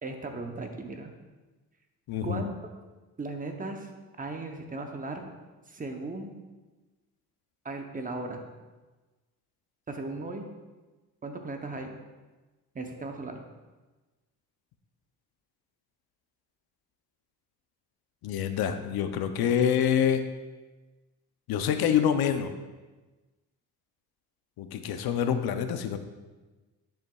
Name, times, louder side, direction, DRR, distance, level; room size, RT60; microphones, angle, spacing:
voice 1, 0.0-1.1 2.2-2.5 3.2-3.9 4.2-5.3 5.7-6.3 7.6-8.4 9.9-10.5 11.2-12.0 12.7-13.4, right 2 dB, 20° right, 4 dB, 0.7 m, -36 dB
voice 2, 2.1-2.4 18.2-20.3 21.5-22.5 24.6-26.0, left 8 dB, 75° left, 8 dB, 0.6 m, -26 dB
10.5 x 6.9 x 2.3 m, 1.2 s
cardioid pair, 140°, 37 cm